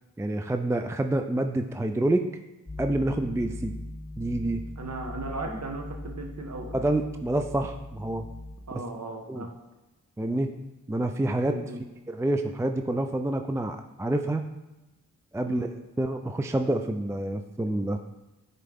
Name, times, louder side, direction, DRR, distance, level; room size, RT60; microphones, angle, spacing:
voice 1, 0.2-2.3 2.8-3.7 4.2-4.6 6.7-8.3 9.3-9.5 10.2-10.5 10.9-11.6 12.1-14.4 15.3-15.7 16.0-18.0, right 1 dB, 10° right, 6 dB, 0.4 m, -27 dB
sound 1, 2.7-8.6, left 1 dB, 15° left, 0.9 m, -40 dB
voice 2, 4.8-6.9 8.7-9.5 11.5-11.8 15.5-15.7, right 2 dB, 50° right, 2 dB, 1.3 m, -37 dB
10.0 x 4.3 x 3.5 m, 1.0 s
cardioid pair, 40°, 34 cm